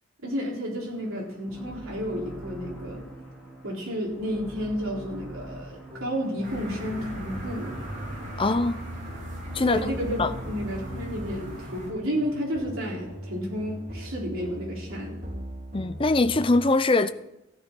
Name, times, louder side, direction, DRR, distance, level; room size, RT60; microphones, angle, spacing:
voice 1, 0.2-3.0 3.6-7.7 9.7-15.2, equal, 85° right, 3.8 m, -31 dB
sound 1, 0.8-10.8, right 1 dB, 5° left, 3.3 m, -44 dB
sound 2, 5.9-16.6, equal, 45° right, 3.2 m, -40 dB
sound 3, 6.4-11.9, right 1 dB, 60° right, 3.9 m, -39 dB
voice 2, 8.4-8.9 9.5-9.9 10.2-10.3 15.7-17.1, left 2 dB, 25° left, 0.5 m, -22 dB
15.0 x 10.0 x 4.5 m
head